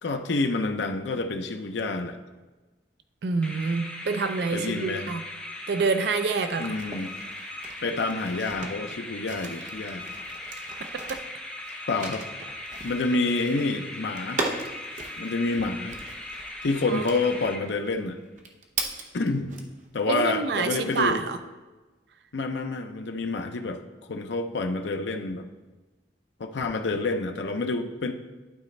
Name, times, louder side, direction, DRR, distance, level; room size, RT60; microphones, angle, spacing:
voice 1, 0.0-2.2 4.5-5.1 6.6-7.1 7.8-10.1 11.9-12.2 12.8-14.5 15.2-16.0 16.6-18.2 19.1-19.5 19.9-21.2 22.3-23.8 24.1-25.5 26.4-28.1, left 3 dB, 90° left, 6 dB, 0.6 m, -28 dB
voice 2, 3.2-5.2 5.7-6.8 11.1-11.2 16.9-17.0 20.1-21.4, right 4 dB, 75° right, 9 dB, 0.4 m, -27 dB
sound 1, 3.4-18.1, left 1 dB, 5° left, 0.6 m, -39 dB
sound 2, 6.5-19.9 20.3-21.4, right 3 dB, 45° right, 0.7 m, -39 dB
11.5 x 4.1 x 3.2 m, 1.2 s
head